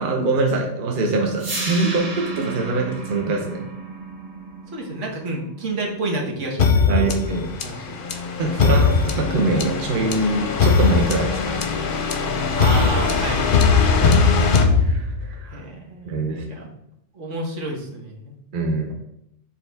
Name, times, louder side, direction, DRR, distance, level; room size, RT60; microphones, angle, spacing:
voice 1, 0.0-3.6 6.9-7.5 8.4-11.7 14.0-14.2 14.8-15.6 16.0-16.7 18.5-18.9, right 2 dB, 45° right, 2 dB, 1.0 m, -23 dB
sound 1, 1.4-7.4, right 3 dB, 90° right, 1.9 m, -33 dB
voice 2, 4.7-7.1 7.6-8.0 8.6-8.9 12.5-13.7 14.0-14.1 15.5-16.6 17.1-18.3, right 2 dB, 75° right, -1 dB, 1.5 m, -30 dB
sound 2, 6.6-15.4, left 5 dB, 50° left, 0.7 m, -20 dB
6.6 x 4.2 x 3.4 m, 0.79 s
omnidirectional pair, 1.3 m